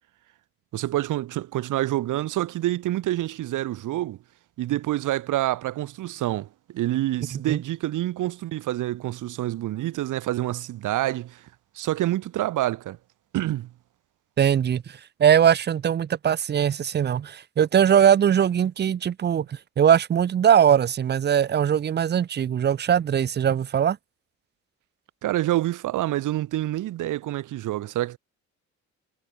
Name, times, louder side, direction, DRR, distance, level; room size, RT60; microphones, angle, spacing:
voice 1, 0.7-4.2 4.6-11.4 11.7-13.0 13.3-13.7 25.2-28.2, right 15 dB, 85° right, 4.0 m, -27 dB
voice 2, 14.4-24.0, right 9 dB, 35° right, 0.5 m, -21 dB
cardioid pair, 90°, 30 cm